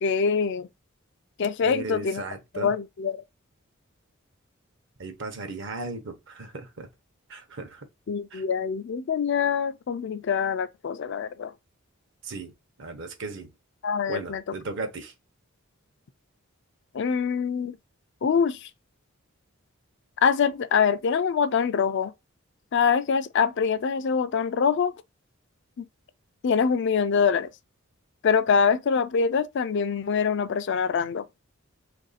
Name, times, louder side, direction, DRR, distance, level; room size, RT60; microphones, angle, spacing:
voice 1, 0.0-0.7 1.4-2.2 2.5-3.2 8.1-11.5 13.8-14.4 16.9-17.8 18.2-18.7 20.2-22.1 22.7-24.9 25.8-25.9 26.4-27.5 28.2-31.2, left 6 dB, 55° left, 0.4 m, -24 dB
voice 2, 1.6-2.7 5.0-6.9 7.3-7.9 8.3-8.4 12.2-12.5 12.8-13.5 14.1-15.1, right 3 dB, 60° right, 0.8 m, -36 dB
3.0 x 2.6 x 4.0 m
head